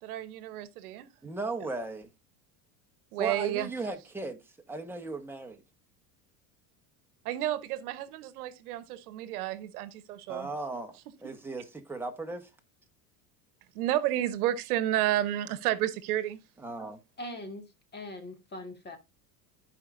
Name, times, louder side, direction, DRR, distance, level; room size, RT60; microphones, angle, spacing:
voice 1, 0.0-1.1 3.1-3.7 7.2-10.5 11.2-11.3 13.7-16.4, right 13 dB, 85° right, 1.0 m, -31 dB
voice 2, 1.2-2.1 3.2-4.4 4.7-5.6 10.3-10.9 11.2-12.5 16.6-17.0, right 3 dB, 5° right, 1.3 m, -36 dB
voice 3, 17.2-19.0, left 1 dB, 25° left, 1.9 m, -41 dB
14.5 x 5.1 x 2.6 m
supercardioid pair, 115°, 44 cm